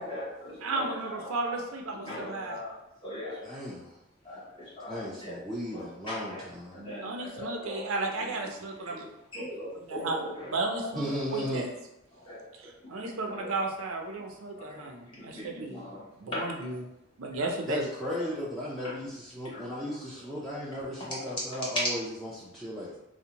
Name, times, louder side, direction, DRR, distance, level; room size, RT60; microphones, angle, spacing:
voice 1, 0.0-1.6 2.0-2.7 3.0-3.4 4.2-5.4 5.7-6.5 6.7-7.9 8.2-8.3 9.3-10.9 12.3-12.4 13.2-13.5 14.6-14.8 15.2-16.0 16.3-16.5 17.4-17.5 18.2-18.3 19.5-19.7, left 1 dB, 25° left, -7 dB, 0.8 m, -40 dB
voice 2, 0.6-2.6 7.0-9.0 9.9-10.2 10.5-11.7 12.6-15.8 16.2-16.8 17.2-17.9, right 3 dB, 80° right, 2 dB, 0.5 m, -34 dB
voice 3, 3.4-3.9 4.9-6.8 10.9-11.6 17.7-23.0, equal, ahead, -8 dB, 0.3 m, -35 dB
2.6 x 2.1 x 2.8 m, 0.85 s
head